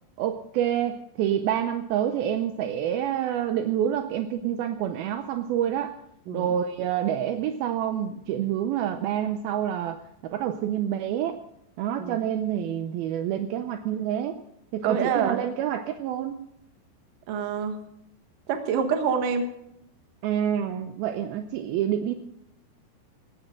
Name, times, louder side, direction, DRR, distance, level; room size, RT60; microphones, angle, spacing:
voice 1, 0.2-5.9 6.3-11.4 11.8-14.4 14.7-16.4 20.2-22.1, right 10 dB, 85° right, 7 dB, 2.2 m, -27 dB
voice 2, 14.9-15.4 17.3-17.8 18.5-19.5, right 6 dB, 60° right, 6 dB, 2.7 m, -26 dB
18.5 x 15.5 x 3.8 m, 0.77 s
omnidirectional pair, 5.3 m